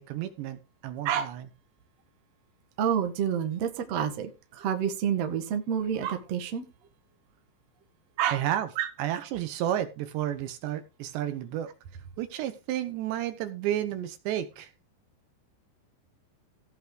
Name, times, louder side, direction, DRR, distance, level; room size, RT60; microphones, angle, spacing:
voice 1, 0.0-1.5 8.3-8.7 9.0-11.7 12.2-14.7, right 12 dB, 75° right, 3.2 m, -31 dB
voice 2, 2.8-6.7 8.2-8.4 8.8-8.9, right 8 dB, 50° right, 2.0 m, -28 dB
17.0 x 5.9 x 4.8 m
omnidirectional pair, 5.3 m